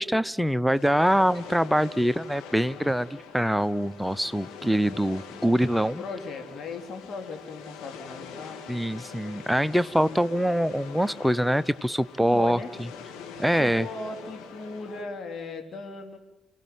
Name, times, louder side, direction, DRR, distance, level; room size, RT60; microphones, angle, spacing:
voice 1, 0.0-6.0 8.7-12.6 13.4-13.9, equal, 5° right, 17 dB, 0.8 m, -24 dB
sound 1, 0.7-15.0, left 6 dB, 70° left, 2.9 m, -44 dB
voice 2, 6.0-8.6 10.0-10.2 12.2-12.7 13.5-16.2, left 3 dB, 55° left, 5 dB, 3.2 m, -37 dB
29.0 x 17.5 x 9.4 m, 1.0 s
hypercardioid pair, 45°, 0 cm